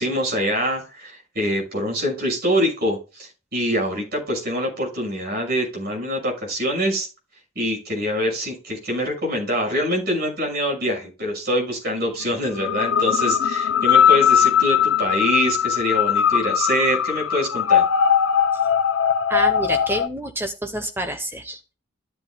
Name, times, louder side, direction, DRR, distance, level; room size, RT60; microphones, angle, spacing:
voice 1, 0.0-7.1 7.5-17.9, equal, 50° right, 0 dB, 6.5 m, -24 dB
sound 1, 12.5-20.1, left 8 dB, 70° left, 0.6 m, -19 dB
voice 2, 19.3-21.7, right 1 dB, 10° right, 5 dB, 1.0 m, -28 dB
13.5 x 8.1 x 2.3 m, 0.31 s
head